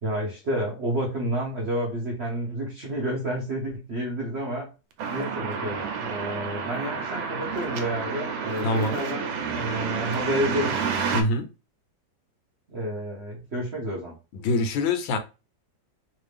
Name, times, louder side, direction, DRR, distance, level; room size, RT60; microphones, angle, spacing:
voice 1, 0.0-4.7 5.0-10.8 12.7-14.1, equal, 55° right, 0.7 m, -30 dB
sound 1, 5.0-11.2, right 6 dB, 85° right, 1.4 m, -30 dB
voice 2, 8.6-9.0 11.1-11.5 14.3-15.2, left 2 dB, 85° left, 1.4 m, -24 dB
3.3 x 2.5 x 3.3 m
omnidirectional pair, 2.1 m